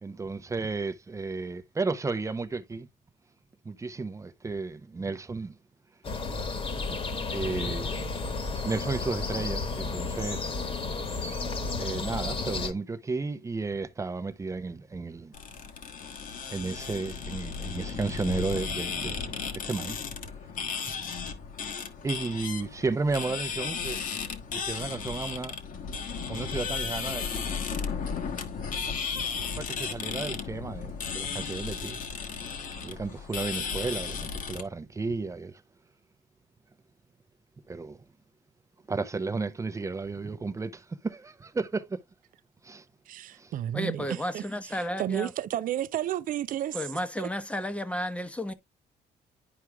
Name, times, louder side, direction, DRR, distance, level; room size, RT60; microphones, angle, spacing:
voice 1, 0.0-2.9 3.6-5.6 6.9-7.0 7.3-8.0 8.6-10.5 11.8-15.4 16.5-20.0 22.0-24.0 24.5-25.6 26.3-27.5 29.6-32.0 32.3-32.6 32.8-35.6 37.7-38.0 38.9-42.0 42.6-42.9 43.4-43.5, right 3 dB, 20° right, 0.7 m, -33 dB
sound 1, 6.0-12.7, left 4 dB, 35° left, 1.3 m, -32 dB
sound 2, 15.3-34.6, left 6 dB, 55° left, 1.2 m, -35 dB
voice 2, 43.1-47.3, right 12 dB, 55° right, 0.5 m, -33 dB
voice 3, 43.7-45.3 46.7-48.5, equal, 5° left, 0.9 m, -32 dB
11.0 x 4.6 x 2.3 m
cardioid pair, 110°, 17 cm